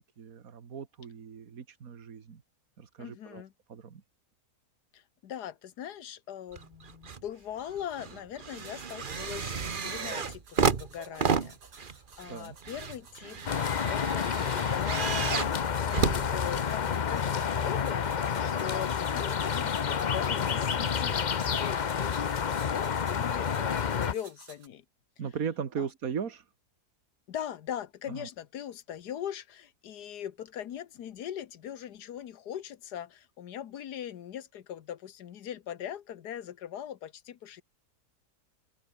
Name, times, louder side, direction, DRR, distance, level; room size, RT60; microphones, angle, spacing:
voice 1, 0.2-2.4 2.8-3.4 3.7-4.0 12.3-12.6 25.2-26.5 28.1-28.3, right 7 dB, 60° right, 2.0 m, -37 dB
voice 2, 3.0-3.5 4.9-13.6 13.9-15.6 15.9-24.8 25.8-25.9 27.3-37.6, left 10 dB, 80° left, 1.6 m, -41 dB
sound 1, 6.5-7.2 7.6-17.0 17.8-17.9, right 5 dB, 35° right, 1.2 m, -32 dB
sound 2, 8.5-24.7, right 5 dB, 85° right, 3.0 m, -54 dB
sound 3, 13.5-24.1, left 7 dB, 45° left, 0.6 m, -29 dB
open air
omnidirectional pair, 1.7 m